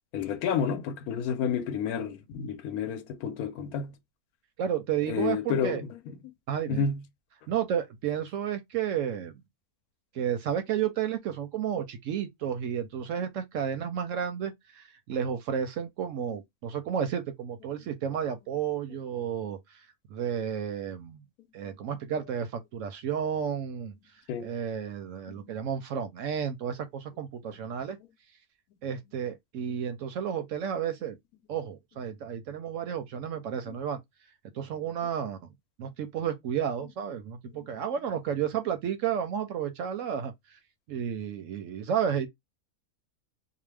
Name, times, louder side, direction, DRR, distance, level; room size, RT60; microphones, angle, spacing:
voice 1, 0.1-3.9 5.1-5.9 6.7-7.0 24.3-24.5 25.3-25.4 33.7-33.8 37.5-37.7, left 7 dB, 75° left, 1.1 m, -30 dB
voice 2, 4.6-5.8 6.5-6.9 7.5-9.3 10.1-21.2 21.5-23.9 24.4-28.0 28.8-31.2 31.5-34.0 34.5-35.5 35.8-40.6 40.9-42.3, right 8 dB, 70° right, 0.8 m, -32 dB
2.8 x 2.1 x 3.1 m
omnidirectional pair, 1.6 m